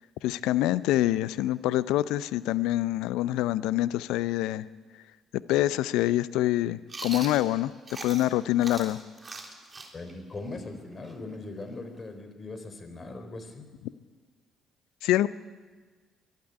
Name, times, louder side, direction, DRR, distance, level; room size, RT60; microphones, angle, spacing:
voice 1, 0.2-4.6 5.3-7.7 8.0-9.0 15.0-15.3, left 15 dB, 70° left, 18 dB, 0.6 m, -26 dB
Chewing mastication, 6.9-8.3 8.6-12.2, right 3 dB, 35° right, 3.6 m, -41 dB
voice 2, 9.9-13.7, left 2 dB, 35° left, 8 dB, 3.9 m, -40 dB
23.0 x 12.0 x 9.7 m, 1.4 s
hypercardioid pair, 50°, 0 cm